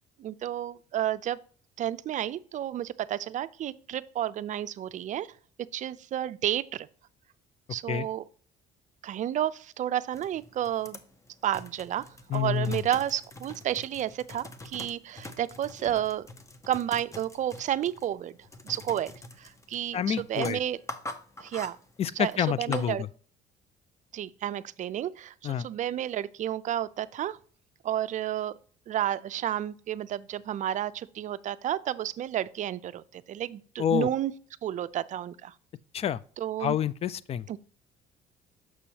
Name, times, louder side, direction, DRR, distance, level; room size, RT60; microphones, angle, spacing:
voice 1, 0.2-1.4 1.8-5.3 5.6-6.9 7.7-8.3 9.0-11.0 11.4-16.3 16.7-18.4 18.6-20.8 21.4-21.8 22.2-23.0 24.1-27.4 27.8-28.5 28.9-34.3 34.6-35.5 36.4-36.7 37.5-37.6, right 11 dB, 45° right, 0.4 m, -31 dB
sound 1, 10.1-22.9, left 2 dB, 20° left, 0.7 m, -45 dB
voice 2, 12.3-12.8 19.9-20.6 22.0-23.1 25.4-25.7 33.8-34.1 35.9-36.2 36.6-37.6, left 9 dB, 35° left, 0.3 m, -28 dB
6.8 x 6.2 x 2.8 m
cardioid pair, 110°, 17 cm